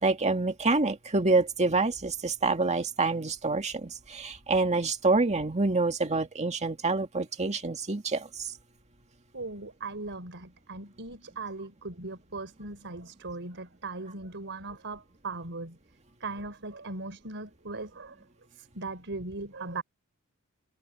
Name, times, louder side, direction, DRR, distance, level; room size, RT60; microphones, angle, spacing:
voice 1, 0.0-8.5, right 3 dB, 30° right, 2.1 m, -27 dB
voice 2, 9.3-15.8 16.2-18.2 18.5-19.8, right 3 dB, 55° right, 4.8 m, -39 dB
head